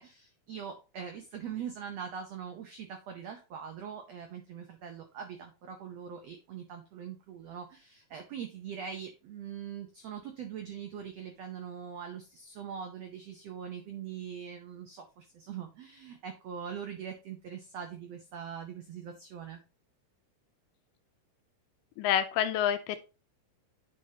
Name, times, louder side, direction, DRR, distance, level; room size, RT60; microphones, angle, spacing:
voice 1, 0.0-19.6, right 8 dB, 85° right, 4 dB, 1.4 m, -42 dB
voice 2, 22.0-23.0, left 10 dB, 80° left, 10 dB, 2.0 m, -28 dB
9.7 x 5.0 x 2.8 m, 0.31 s
omnidirectional pair, 4.1 m